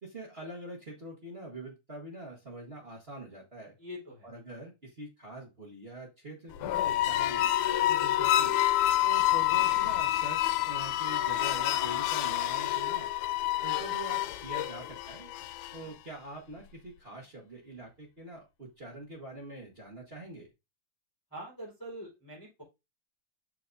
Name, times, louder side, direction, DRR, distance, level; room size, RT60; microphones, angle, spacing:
voice 1, 0.0-3.8 4.2-7.5 7.8-8.6 9.0-13.1 13.6-15.3 15.7-20.5, right 2 dB, 50° right, -2 dB, 0.7 m, -44 dB
voice 2, 3.8-4.3 15.6-15.9 21.3-22.6, equal, 5° left, -5 dB, 3.8 m, -44 dB
sound 1, 6.5-15.9, left 13 dB, 85° left, 2.0 m, -28 dB
7.6 x 5.7 x 2.7 m, 0.25 s
omnidirectional pair, 3.5 m